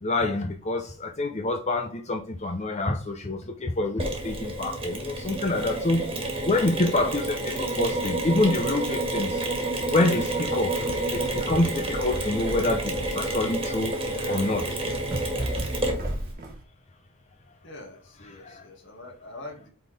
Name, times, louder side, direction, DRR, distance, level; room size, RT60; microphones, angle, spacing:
voice 1, 0.0-6.0 6.4-9.4 9.9-14.8 18.4-18.6, left 2 dB, 30° left, 0.7 m, -27 dB
Mechanisms, 4.0-16.3, right 1 dB, 25° right, 1.7 m, -29 dB
sound 1, 10.7-16.6, right 1 dB, 45° right, 1.6 m, -36 dB
voice 2, 17.6-19.7, left 2 dB, 60° left, 2.2 m, -43 dB
8.6 x 4.1 x 3.4 m
head